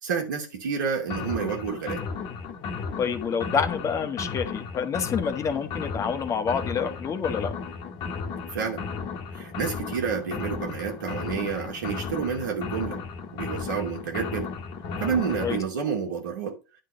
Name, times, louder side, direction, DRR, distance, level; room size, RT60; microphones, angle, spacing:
voice 1, 0.0-2.0 8.5-8.8 9.3-13.0 13.3-14.5 15.0-16.6, right 6 dB, 75° right, 2.5 m, -29 dB
sound 1, 1.1-15.6, left 5 dB, 45° left, 1.4 m, -34 dB
voice 2, 3.0-7.5 15.4-15.6, left 6 dB, 30° left, 1.2 m, -28 dB
10.0 x 3.9 x 6.1 m
hypercardioid pair, 85°, 10 cm